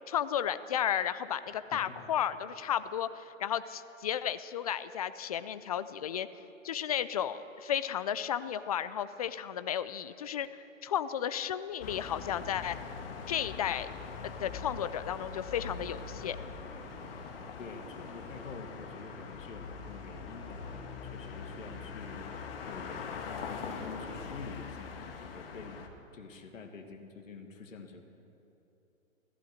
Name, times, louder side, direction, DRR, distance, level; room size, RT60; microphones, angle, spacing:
voice 1, 0.1-6.3 6.6-12.8 13.3-13.9 14.4-16.4, left 9 dB, 30° left, 14 dB, 0.4 m, -33 dB
sound 1, 11.8-25.9, left 5 dB, 45° left, 1.7 m, -42 dB
sound 2, 15.4-24.2, right 2 dB, 55° right, 4.9 m, -55 dB
voice 2, 17.6-22.4 22.7-25.8 26.1-28.0, left 4 dB, 75° left, 4 dB, 2.2 m, -47 dB
15.5 x 14.5 x 6.4 m, 2.9 s
hypercardioid pair, 135°, 40 cm